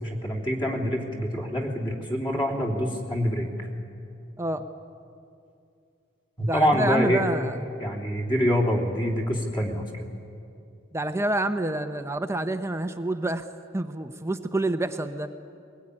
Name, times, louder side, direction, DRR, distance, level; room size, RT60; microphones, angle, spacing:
voice 1, 0.0-3.7 6.4-7.2 7.8-9.9, equal, 25° left, -1 dB, 3.1 m, -25 dB
voice 2, 6.5-7.6 10.9-13.4 13.7-15.3, right 1 dB, 15° right, 8 dB, 0.7 m, -28 dB
22.0 x 20.0 x 9.9 m, 2.5 s
head